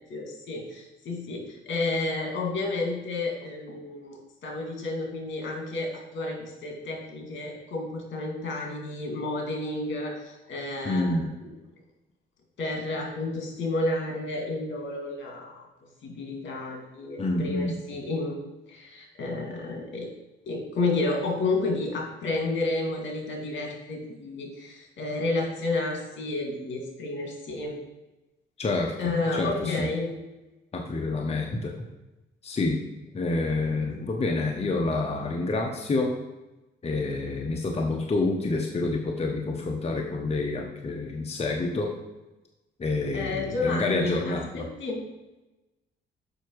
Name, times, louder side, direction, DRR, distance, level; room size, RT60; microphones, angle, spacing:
voice 1, 0.1-11.2 12.6-15.6 16.0-18.4 18.7-20.1 20.5-27.8 29.0-30.1 33.8-33.9 43.1-45.0, left 2 dB, 70° left, 1 dB, 2.4 m, -31 dB
voice 2, 10.8-11.3 17.2-17.7 28.6-29.9 30.7-31.7 32.4-32.8 33.1-36.1 36.8-41.9 42.8-44.7, left 2 dB, 30° left, 1 dB, 1.0 m, -28 dB
6.8 x 5.8 x 4.7 m, 1.0 s
cardioid pair, 90°, 20 cm